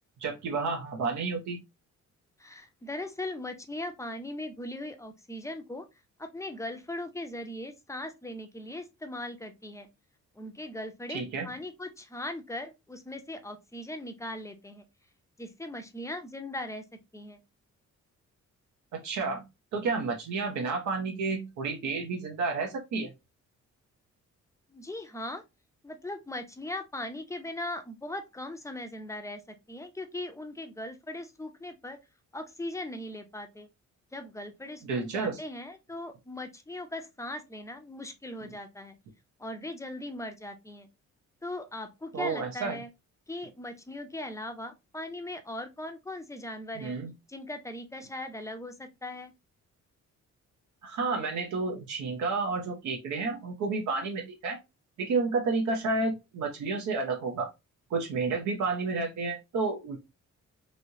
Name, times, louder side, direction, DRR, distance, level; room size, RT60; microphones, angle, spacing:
voice 1, 0.2-1.6 11.1-11.5 18.9-19.4 19.7-23.1 34.8-35.4 38.4-38.5 42.1-42.8 46.8-47.1 50.8-54.6 55.0-57.5 57.9-60.0, right 4 dB, 75° right, 0.8 m, -31 dB
voice 2, 2.4-5.8 6.2-9.9 10.4-14.8 15.4-16.8 17.1-17.4 24.7-25.4 25.8-29.4 29.7-32.0 32.3-33.7 34.1-39.0 39.4-40.9 41.4-42.9 43.3-46.9 47.3-49.3, left 1 dB, 10° left, 0.5 m, -39 dB
3.1 x 2.7 x 2.7 m
cardioid pair, 115°, 29 cm